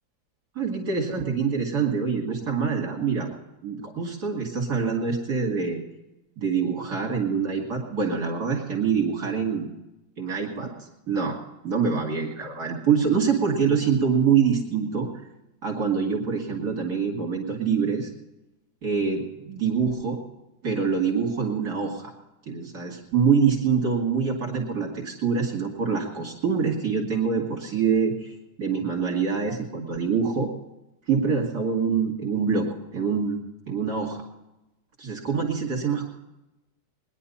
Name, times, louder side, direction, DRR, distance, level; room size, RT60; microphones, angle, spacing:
voice 1, 0.6-3.3 3.6-5.8 6.4-9.7 10.2-10.7 11.1-11.4 11.6-15.1 15.6-18.1 18.8-20.2 20.6-22.1 22.5-30.5 31.1-33.4 33.7-34.2 35.0-36.1, right 6 dB, 55° right, -1 dB, 3.0 m, -25 dB
21.0 x 11.0 x 4.2 m, 0.95 s
omnidirectional pair, 2.1 m